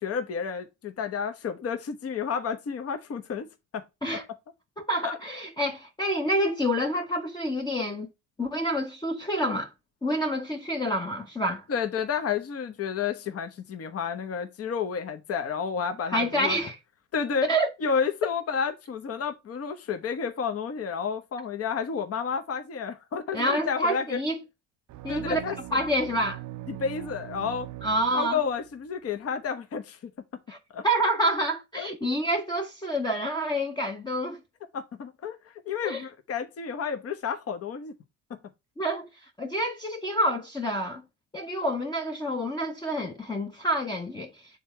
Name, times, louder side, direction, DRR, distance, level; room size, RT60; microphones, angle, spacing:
voice 1, 0.0-3.5 3.7-3.8 5.0-5.2 11.7-16.6 17.1-17.5 17.8-24.2 25.1-25.8 26.7-27.7 28.1-30.1 30.7-30.8 31.8-31.9 34.7-37.9 38.3-38.4, left 6 dB, 40° left, 1.0 m, -31 dB
voice 2, 4.8-8.1 8.4-9.7 10.0-11.6 16.1-16.8 17.5-17.7 23.3-24.4 25.0-25.4 25.7-26.4 27.8-28.4 30.5-30.6 30.8-34.4 35.8-36.0 38.8-39.1 39.4-41.0 41.3-44.4, equal, 10° left, 0.8 m, -28 dB
sound 1, 24.9-28.7, right 14 dB, 50° right, 0.6 m, -41 dB
6.9 x 3.6 x 4.3 m
supercardioid pair, 75°, 38 cm